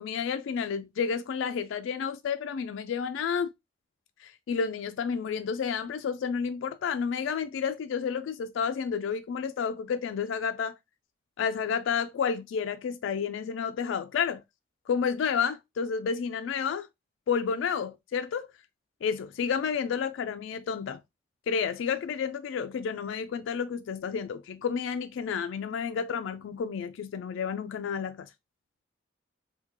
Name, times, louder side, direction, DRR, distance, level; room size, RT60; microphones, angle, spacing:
voice 1, 0.0-3.5 4.2-10.7 11.4-14.4 14.9-16.9 17.3-18.5 19.0-21.0 21.5-28.3, left 6 dB, 85° left, 0.3 m, -30 dB
3.6 x 2.2 x 3.0 m
head